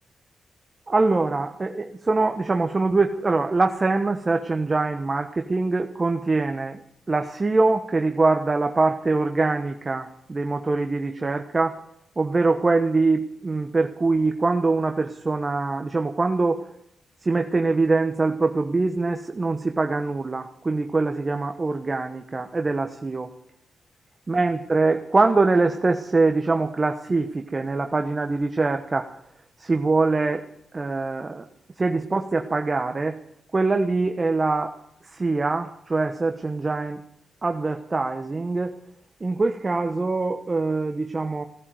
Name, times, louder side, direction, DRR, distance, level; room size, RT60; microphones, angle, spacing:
voice 1, 0.9-6.8 7.1-11.8 12.2-16.6 17.2-23.3 24.3-29.1 29.6-30.4 30.7-31.4 31.8-33.2 33.5-34.8 35.1-37.0 37.4-38.7 39.2-41.4, right 3 dB, 35° right, 5 dB, 1.2 m, -23 dB
16.5 x 11.0 x 7.9 m, 0.74 s
cardioid pair, 65°, 0 cm